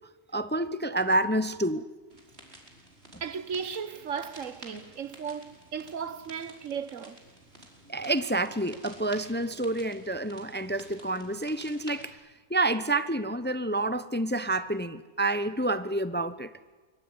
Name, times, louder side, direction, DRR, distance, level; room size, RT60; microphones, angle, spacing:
voice 1, 0.3-1.9 7.9-12.2 12.5-16.5, right 2 dB, 10° left, 0.7 m, -28 dB
sound 1, 2.1-12.1, right 1 dB, 50° right, 5.5 m, -52 dB
voice 2, 3.2-7.2, right 6 dB, 80° right, 1.5 m, -36 dB
25.5 x 24.0 x 9.7 m
omnidirectional pair, 1.3 m